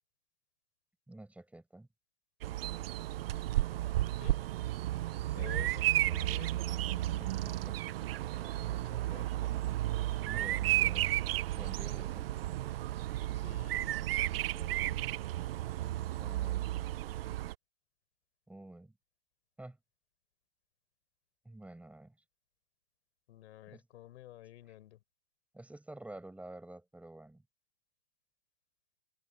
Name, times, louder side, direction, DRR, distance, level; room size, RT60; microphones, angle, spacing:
voice 1, 1.1-1.9 5.3-5.5 6.0-6.2 7.1-7.8 10.3-11.2 11.5-12.3 16.2-16.7 18.5-18.9 19.6-19.8 21.5-22.1 23.7-23.8 25.5-27.4, right 1 dB, 5° right, 6.9 m, -49 dB
Bird vocalization bird call bird song, 2.4-17.5, right 14 dB, 45° right, 0.5 m, -33 dB
voice 2, 5.3-7.7 8.5-9.4 13.4-15.1 23.3-25.0, left 14 dB, 55° left, 6.0 m, -52 dB
open air
hypercardioid pair, 140°, 40 cm